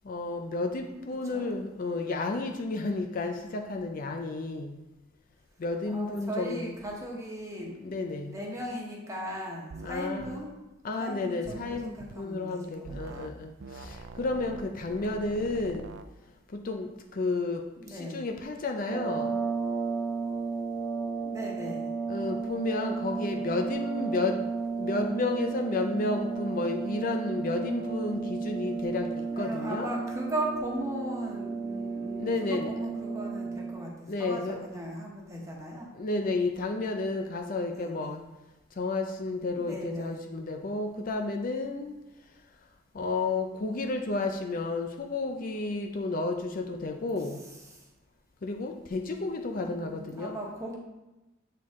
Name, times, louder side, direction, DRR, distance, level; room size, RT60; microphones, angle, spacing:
voice 1, 0.0-4.8 5.6-6.7 7.8-8.4 9.8-10.4 10.8-15.9 16.5-19.4 22.1-24.4 24.8-29.9 32.2-32.7 34.1-34.6 35.9-38.2 38.8-41.9 42.9-47.4 48.4-50.4, left 3 dB, 45° left, 4 dB, 0.5 m, -32 dB
voice 2, 5.8-10.5 11.0-13.3 17.8-18.3 21.2-21.9 29.3-35.9 37.0-37.1 37.7-38.2 39.6-40.2 47.2-47.9 49.4-50.8, right 1 dB, 15° right, -2 dB, 1.2 m, -38 dB
sound 1, 9.7-9.9 10.2-10.4 11.4-12.2 12.8-13.3 13.6-16.1, right 3 dB, 65° right, 0.4 m, -44 dB
sound 2, 18.8-33.9, right 4 dB, 15° left, 1.8 m, -33 dB
7.5 x 4.5 x 3.6 m, 1.0 s
head